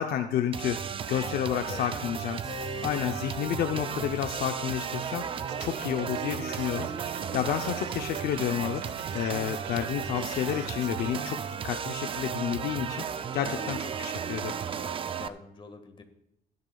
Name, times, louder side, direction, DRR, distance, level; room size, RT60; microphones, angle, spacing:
voice 1, 0.0-2.4 2.8-5.2 5.6-6.9 7.3-8.8 9.1-13.0 13.3-14.6, left 10 dB, 65° left, 5 dB, 0.7 m, -30 dB
sound 1, 0.5-15.3, right 7 dB, 30° right, 0.5 m, -35 dB
voice 2, 1.5-2.1 13.4-14.0 15.1-16.0, left 4 dB, 30° left, 6 dB, 1.7 m, -45 dB
Keyboard (musical), 2.4-8.5, equal, 5° right, 2.4 m, -47 dB
sound 2, 5.4-11.4, right 8 dB, 85° right, 0.9 m, -42 dB
16.5 x 10.5 x 2.3 m, 0.81 s
cardioid pair, 110°, 17 cm